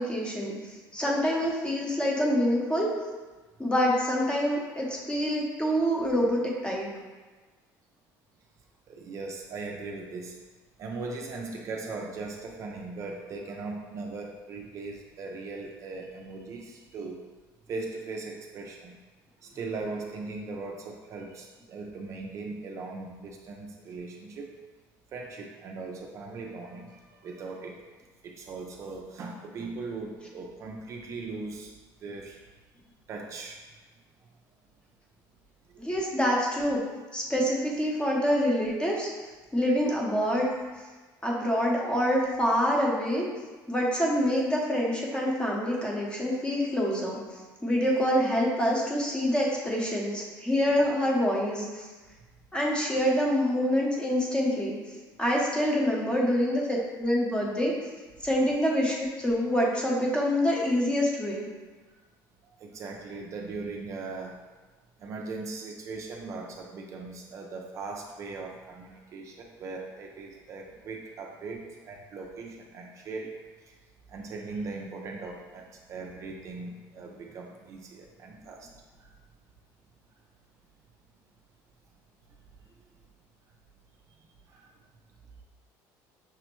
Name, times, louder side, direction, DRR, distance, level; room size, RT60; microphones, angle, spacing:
voice 1, 0.0-2.9 3.6-6.9 35.8-36.8 37.1-39.1 39.5-40.5 41.2-43.3 43.7-47.2 47.6-51.9 52.5-54.8 55.2-57.7 58.2-61.5, equal, 10° left, -2 dB, 0.7 m, -26 dB
voice 2, 8.9-10.4 10.8-17.2 17.7-18.9 19.4-24.6 25.1-27.8 28.2-31.7 32.0-32.4 33.1-33.6 36.1-36.2 56.0-56.1 62.6-64.4 65.0-73.4 73.7-73.8 74.1-78.7 79.0-79.1 84.5-84.7, right 3 dB, 40° right, 1 dB, 0.4 m, -39 dB
6.0 x 2.0 x 3.0 m, 1.3 s
cardioid pair, 130°, 8 cm